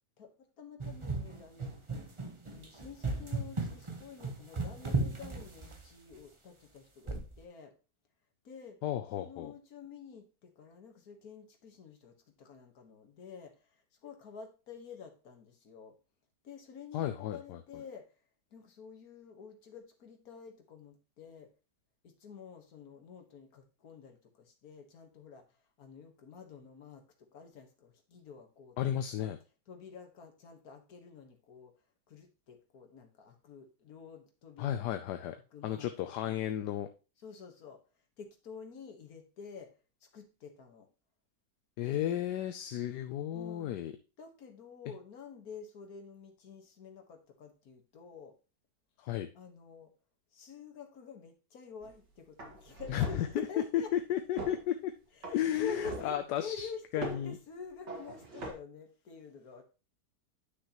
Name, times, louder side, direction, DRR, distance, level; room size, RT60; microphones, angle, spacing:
voice 1, 0.2-1.9 2.5-7.7 8.4-8.8 9.2-16.0 16.4-18.2 18.5-21.5 22.0-28.8 29.2-29.3 29.7-31.7 32.1-35.0 35.5-35.9 36.2-36.3 37.2-37.8 38.2-40.9 42.0-42.2 43.3-43.9 44.2-48.3 49.4-49.9 50.3-53.9 55.1-59.6, left 5 dB, 60° left, 5 dB, 1.8 m, -48 dB
sound 1, 0.8-6.1 7.1-7.4, right 3 dB, 25° right, 0.8 m, -36 dB
voice 2, 8.8-9.5 16.9-17.4 28.8-29.4 34.6-35.4 35.6-36.9 41.8-43.9 49.0-49.3 52.9-53.3 53.9-54.9 55.3-56.7 56.9-57.3, left 11 dB, 80° left, 8 dB, 1.2 m, -33 dB
sound 2, 51.8-52.0 52.4-53.4 54.4-54.6 55.2-56.2 57.0-57.3 57.9-58.5, right 2 dB, 85° right, 2.7 m, -42 dB
9.8 x 6.2 x 3.0 m, 0.33 s
omnidirectional pair, 1.8 m